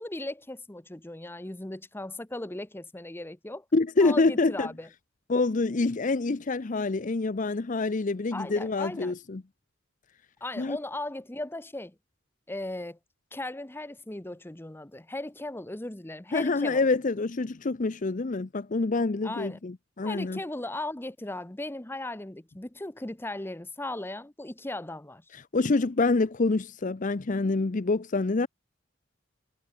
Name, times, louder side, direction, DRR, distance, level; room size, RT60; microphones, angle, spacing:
voice 1, 0.0-3.6 4.0-4.9 8.3-9.1 10.4-11.9 12.5-13.0 13.3-16.9 19.2-19.6 20.0-25.2, left 2 dB, 10° left, 0.8 m, -37 dB
voice 2, 3.7-4.7 5.3-9.4 10.6-10.8 16.3-20.4 25.3-28.5, left 3 dB, 40° left, 0.6 m, -26 dB
head